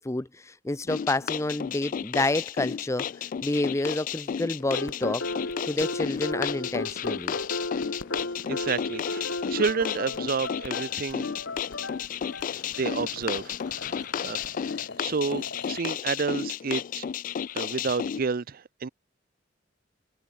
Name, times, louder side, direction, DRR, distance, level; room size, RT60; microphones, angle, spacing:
voice 1, 0.0-3.1 3.4-5.3 5.7-7.4, left 2 dB, 15° left, 0.6 m, -29 dB
sound 1, 0.9-18.2, left 8 dB, 45° left, 0.3 m, -33 dB
sound 2, 4.7-14.5, left 2 dB, 85° left, 2.1 m, -35 dB
voice 2, 8.5-9.3 9.5-11.3 12.8-13.5 14.2-14.4 15.0-17.0 17.5-18.9, right 5 dB, 50° right, 0.5 m, -29 dB
sound 3, 11.6-15.9, left 3 dB, 65° left, 5.7 m, -45 dB
head